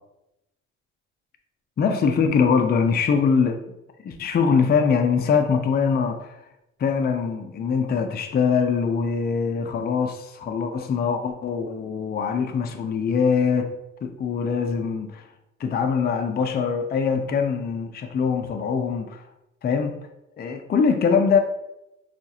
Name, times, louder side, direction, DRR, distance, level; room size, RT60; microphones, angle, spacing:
voice 1, 1.8-3.6 4.0-6.4 6.8-13.7 14.0-15.3 15.6-19.2 19.6-20.0 20.4-21.4, left 6 dB, 35° left, 5 dB, 0.4 m, -23 dB
5.7 x 2.4 x 2.7 m, 0.88 s
cardioid pair, 90°, 30 cm